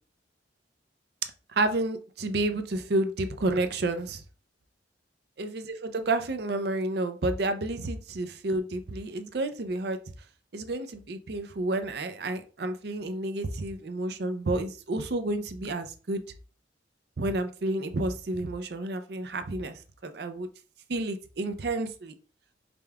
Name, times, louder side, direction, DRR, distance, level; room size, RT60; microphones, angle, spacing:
voice 1, 1.5-4.2 5.4-10.0 10.5-16.2 17.2-20.5 20.9-22.1, right 2 dB, 60° right, 9 dB, 0.5 m, -30 dB
5.1 x 3.4 x 2.2 m, 0.36 s
head